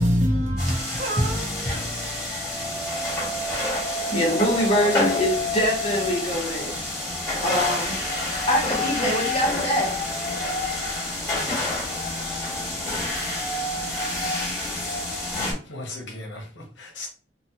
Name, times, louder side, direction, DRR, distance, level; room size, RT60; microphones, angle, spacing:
voice 1, 0.0-2.1 2.6-2.8, equal, 40° right, 0.8 m, -25 dB
sound 1, 0.6-15.5, left 2 dB, 15° left, 1.5 m, -28 dB
voice 2, 4.1-6.7 7.4-7.9 8.5-9.9, equal, 35° left, 0.8 m, -24 dB
voice 3, 15.3-17.1, left 2 dB, 80° left, 0.9 m, -38 dB
2.9 x 2.2 x 2.8 m
head